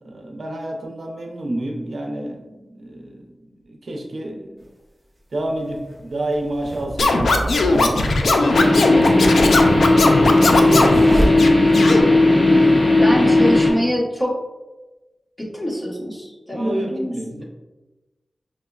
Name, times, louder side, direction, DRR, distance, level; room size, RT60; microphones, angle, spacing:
voice 1, 0.0-3.3 3.7-4.6 5.3-9.9 10.2-12.0 13.3-13.7 16.5-17.4, right 1 dB, 70° right, 2 dB, 0.6 m, -29 dB
sound 1, 4.6-4.7 5.6-12.0, equal, 30° right, 0.6 m, -28 dB
Scratching (performance technique), 7.0-11.0 11.4-12.0, left 3 dB, 90° left, 0.3 m, -18 dB
sound 2, 8.5-13.7, left 2 dB, 40° left, 0.9 m, -15 dB
voice 2, 13.0-14.3 15.4-17.1, equal, 20° left, -5 dB, 1.1 m, -24 dB
5.7 x 2.1 x 2.3 m, 1.1 s
wide cardioid pair, 70°, 0 cm